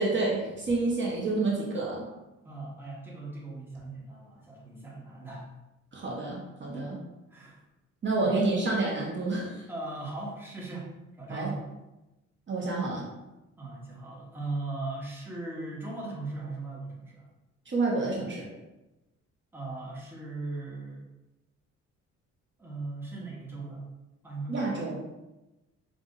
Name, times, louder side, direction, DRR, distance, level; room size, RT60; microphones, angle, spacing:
voice 1, 0.0-2.0 5.9-7.0 8.0-9.6 11.3-11.5 12.5-13.1 17.7-18.5 24.5-25.0, right 3 dB, 40° right, -4 dB, 1.0 m, -29 dB
voice 2, 2.4-5.5 6.7-6.9 7.3-7.6 8.2-8.4 9.7-10.9 11.2-11.6 13.6-17.3 19.5-21.1 22.6-23.9 24.2-24.9, right 2 dB, 5° right, -4 dB, 1.1 m, -38 dB
5.5 x 2.5 x 2.6 m, 1.0 s
cardioid pair, 90°, 30 cm